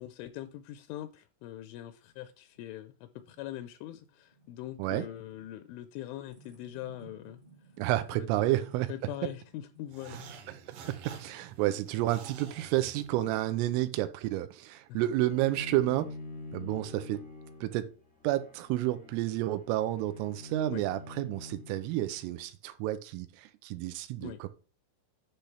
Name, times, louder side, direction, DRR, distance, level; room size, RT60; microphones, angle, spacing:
voice 1, 0.0-7.4 8.1-8.5 8.9-10.3 14.9-15.0 20.7-20.8 24.2-24.4, left 13 dB, 85° left, 2.9 m, -42 dB
sound 1, 2.5-12.6, right 3 dB, 35° right, 0.8 m, -60 dB
voice 2, 7.8-8.9 10.1-10.2 10.5-16.1 16.5-17.2 17.6-17.9 18.2-24.5, right 15 dB, 90° right, 3.3 m, -30 dB
sound 2, 9.9-13.6, right 5 dB, 65° right, 2.2 m, -49 dB
Bowed string instrument, 15.3-22.3, left 2 dB, 5° left, 0.6 m, -46 dB
10.5 x 3.5 x 5.8 m
omnidirectional pair, 5.7 m